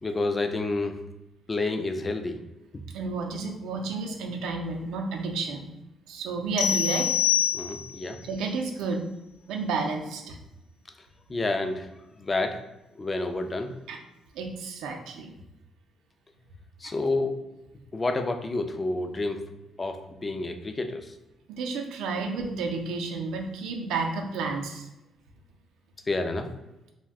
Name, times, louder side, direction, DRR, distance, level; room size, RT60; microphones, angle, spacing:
voice 1, 0.0-1.0 1.5-2.4 7.5-8.2 11.3-11.9 12.2-12.7 13.0-13.7 16.8-17.4 17.9-19.5 19.8-21.1 26.1-26.5, left 2 dB, 25° left, 6 dB, 0.4 m, -29 dB
voice 2, 2.9-5.7 6.1-7.1 8.2-9.0 9.5-10.4 13.9-14.0 14.3-15.3 16.8-16.9 21.5-24.9, right 4 dB, 90° right, 3 dB, 0.4 m, -31 dB
sound 1, 6.6-8.1, left 10 dB, 85° left, 0.6 m, -25 dB
2.5 x 2.1 x 3.5 m, 0.95 s
cardioid pair, 90°, 0 cm